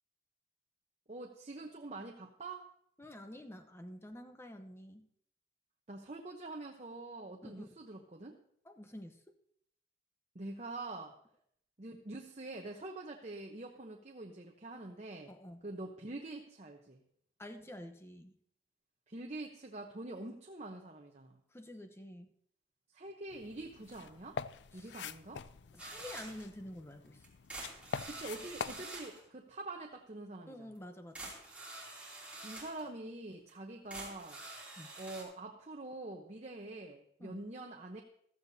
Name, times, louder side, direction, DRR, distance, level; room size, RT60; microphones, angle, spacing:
voice 1, 1.1-2.7 5.9-8.4 10.3-11.1 11.8-15.3 15.6-17.0 19.1-21.3 22.9-24.4 24.7-25.4 28.0-30.7 32.4-34.4 35.0-38.0, right 2 dB, 40° right, 1 dB, 0.9 m, -45 dB
voice 2, 3.0-5.0 7.4-7.6 8.6-9.2 15.3-15.6 17.4-18.4 21.5-22.3 24.7-25.0 25.7-27.3 30.5-31.4 34.8-34.9 37.2-37.4, left 1 dB, 15° left, 6 dB, 0.9 m, -49 dB
sound 1, 23.3-28.9, left 6 dB, 90° left, 0.4 m, -45 dB
sound 2, 25.8-26.5 27.2-29.2 30.8-30.9 31.2-32.8 33.5-33.6 33.9-35.2, right 2 dB, 5° right, 3.0 m, -47 dB
15.0 x 13.5 x 2.8 m, 0.69 s
head